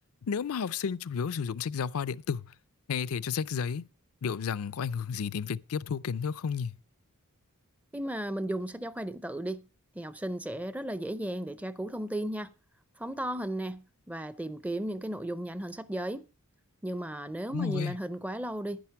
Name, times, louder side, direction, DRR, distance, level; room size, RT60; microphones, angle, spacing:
voice 1, 0.2-2.5 2.9-3.8 4.2-6.8 17.5-18.0, left 6 dB, 75° left, 0.4 m, -32 dB
voice 2, 7.9-9.6 9.9-12.5 13.0-13.8 14.1-16.3 16.8-18.8, right 1 dB, 5° right, 0.5 m, -35 dB
10.5 x 10.0 x 4.6 m
head